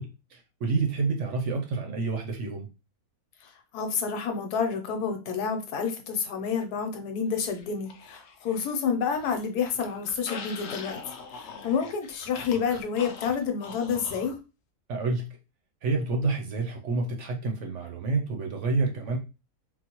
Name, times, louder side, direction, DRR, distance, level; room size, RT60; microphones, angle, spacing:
voice 1, 0.0-2.7 14.9-15.3 15.8-19.2, right 3 dB, 65° right, 2 dB, 0.8 m, -28 dB
voice 2, 3.4-11.0 11.4-14.4, left 6 dB, 90° left, 5 dB, 1.2 m, -29 dB
sound 1, 7.4-8.7 9.0-14.4, left 5 dB, 65° left, 0.7 m, -43 dB
3.9 x 2.0 x 2.8 m, 0.30 s
omnidirectional pair, 1.6 m